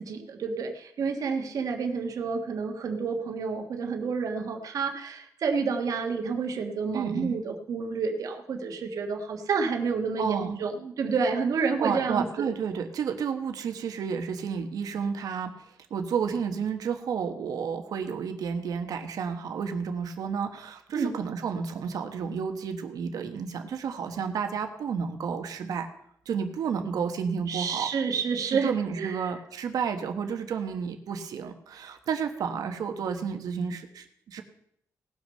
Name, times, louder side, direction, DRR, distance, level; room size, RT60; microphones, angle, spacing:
voice 1, 0.0-12.5 20.9-21.2 27.5-29.3, right 5 dB, 70° right, 4 dB, 1.4 m, -29 dB
voice 2, 6.9-7.4 10.2-10.6 11.8-15.5 15.9-25.9 26.2-27.9 28.5-34.4, right 6 dB, 90° right, 6 dB, 1.2 m, -31 dB
18.5 x 6.3 x 5.5 m, 0.72 s
wide cardioid pair, 155°, 6 cm